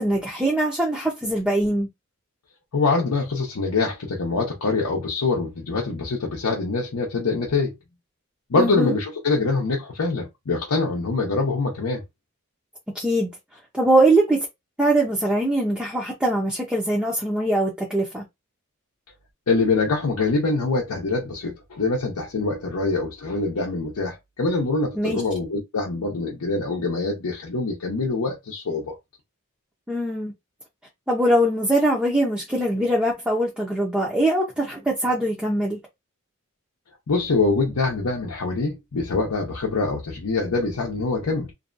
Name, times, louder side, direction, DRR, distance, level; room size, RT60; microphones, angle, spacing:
voice 1, 0.0-1.9 8.6-8.9 12.9-13.3 13.7-14.5 14.8-18.2 25.0-25.2 29.9-30.3 31.1-35.8, right 1 dB, 5° right, 0.5 m, -22 dB
voice 2, 2.7-7.7 8.5-12.0 19.5-29.0 37.1-41.5, left 3 dB, 85° left, 0.7 m, -24 dB
2.6 x 2.2 x 2.5 m
head